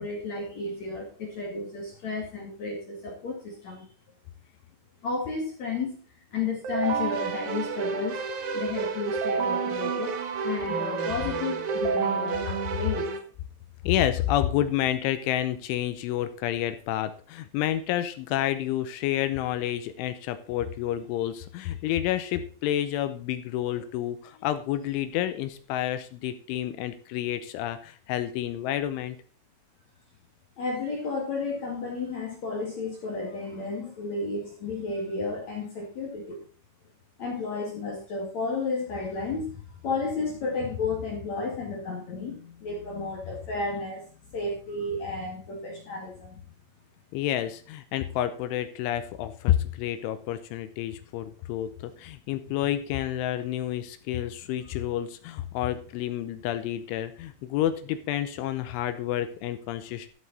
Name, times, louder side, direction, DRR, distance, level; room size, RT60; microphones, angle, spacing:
voice 1, 0.0-3.8 5.0-6.0 6.3-8.2 8.5-10.1 10.4-13.0 30.6-36.4 37.2-39.5 39.8-44.0 44.3-46.4, left 3 dB, 45° left, 0 dB, 2.6 m, -32 dB
Keyboard (musical), 6.6-13.2, right 5 dB, 60° right, 2.0 m, -29 dB
voice 2, 13.8-29.2 47.1-60.1, left 12 dB, 80° left, 11 dB, 3.2 m, -29 dB
13.5 x 7.9 x 4.1 m, 0.40 s
omnidirectional pair, 5.6 m